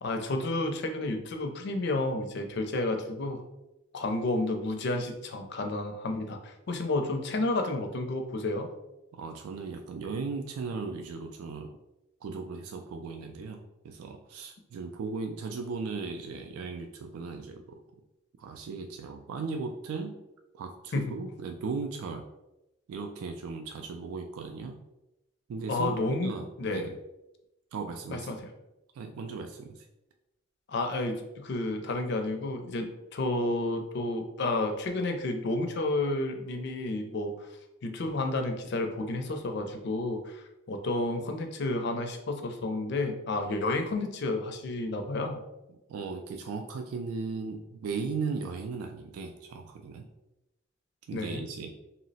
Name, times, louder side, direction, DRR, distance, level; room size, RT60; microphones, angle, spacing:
voice 1, 0.0-3.4 3.9-8.7 20.9-21.1 25.7-26.3 26.6-26.9 28.1-28.4 30.7-37.5 37.8-45.4 51.1-51.5, left 2 dB, 50° left, 5 dB, 0.4 m, -31 dB
voice 2, 9.1-11.7 12.2-17.8 18.4-20.2 20.5-22.2 22.9-24.8 25.5-27.0 27.7-28.4 28.9-29.9 45.9-50.1 51.1-51.7, right 4 dB, 85° right, 4 dB, 0.3 m, -37 dB
2.8 x 2.0 x 3.9 m, 0.93 s
head